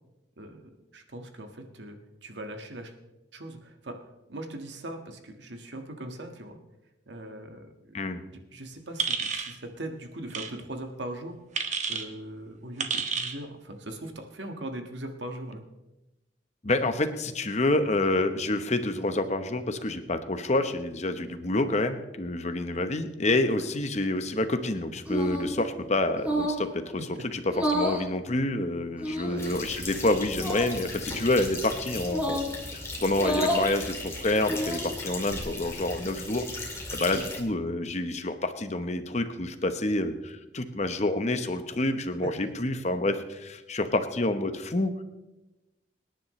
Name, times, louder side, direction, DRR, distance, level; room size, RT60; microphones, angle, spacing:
voice 1, 0.4-2.9 3.3-4.0 4.3-6.6 7.1-7.9 8.5-11.4 11.9-15.6 23.6-23.7 27.1-27.3 29.2-29.4 37.1-37.2 42.2-42.3, right 1 dB, 75° right, 4 dB, 1.7 m, -40 dB
sound 1, 9.0-9.5 10.3-10.5 11.5-12.0 12.8-13.4, right 6 dB, 40° right, 1.2 m, -30 dB
voice 2, 16.6-26.9 27.3-32.4 33.0-36.5 36.9-45.0, left 2 dB, 40° left, 9 dB, 1.0 m, -28 dB
sound 2, 25.1-25.5 26.2-26.7 27.5-28.0 29.0-29.5 30.3-30.7 32.1-32.5 33.1-33.7 34.3-34.9, equal, 10° right, 2.2 m, -29 dB
sound 3, 29.4-37.4, left 2 dB, 15° left, 2.4 m, -37 dB
25.5 x 10.5 x 3.2 m, 1.0 s
head